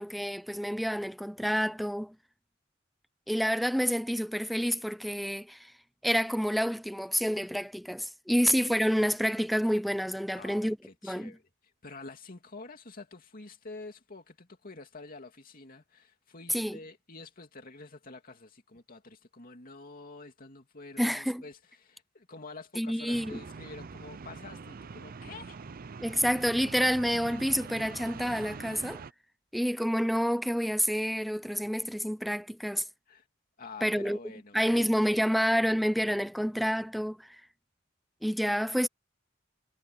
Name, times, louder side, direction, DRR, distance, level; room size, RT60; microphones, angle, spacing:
voice 1, 0.0-2.1 3.3-5.7 6.0-10.8 11.0-11.3 16.5-16.8 21.0-21.4 22.8-23.4 26.0-29.0 29.5-32.8 33.8-34.2 34.5-37.4 38.2-38.9, equal, ahead, 0.4 m, -28 dB
voice 2, 10.3-11.4 11.8-25.6 33.1-33.3 33.6-34.9, left 3 dB, 45° left, 2.6 m, -48 dB
sound 1, 23.1-29.1, right 4 dB, 45° right, 0.5 m, -44 dB
head